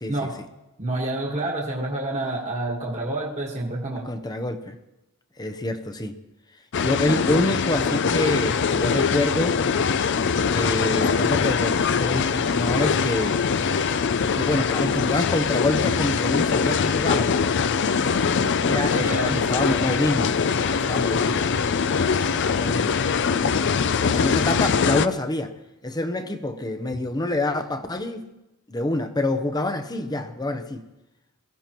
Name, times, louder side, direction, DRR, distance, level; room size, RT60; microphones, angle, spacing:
voice 1, 0.8-4.1 18.9-19.4, right 2 dB, 30° right, 1.6 m, -28 dB
voice 2, 4.0-4.8 5.4-6.2 6.8-9.6 10.5-13.4 14.3-17.4 18.6-20.3 20.7-21.4 22.6-23.0 23.5-23.7 24.0-25.5 25.8-28.3 28.7-30.9, left 1 dB, 20° left, 0.7 m, -26 dB
sound 1, 6.7-25.1, left 6 dB, 55° left, 0.5 m, -22 dB
23.0 x 15.5 x 3.0 m
head